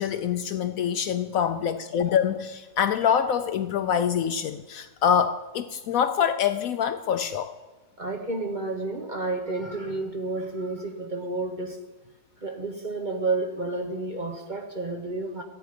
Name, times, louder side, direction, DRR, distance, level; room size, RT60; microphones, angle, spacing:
voice 1, 0.0-7.5, left 8 dB, 70° left, 10 dB, 0.9 m, -25 dB
voice 2, 8.0-11.8 12.4-15.4, right 3 dB, 35° right, 3 dB, 1.0 m, -30 dB
14.0 x 8.9 x 5.1 m, 1.2 s
omnidirectional pair, 1.7 m